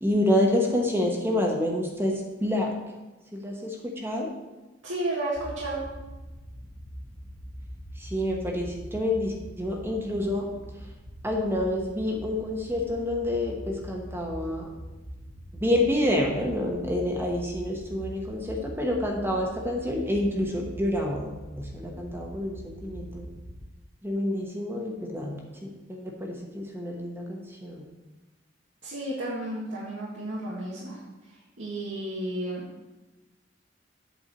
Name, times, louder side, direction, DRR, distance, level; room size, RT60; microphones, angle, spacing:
voice 1, 0.0-2.7 3.3-4.3 8.0-10.5 11.2-14.7 15.6-23.3 24.0-27.8, left 1 dB, 10° right, 0 dB, 1.1 m, -28 dB
voice 2, 4.8-5.8 28.8-32.7, right 1 dB, 85° right, -6 dB, 1.6 m, -33 dB
sound 1, 5.3-23.7, equal, 10° left, 1.4 m, -43 dB
8.3 x 4.5 x 6.7 m, 1.1 s
head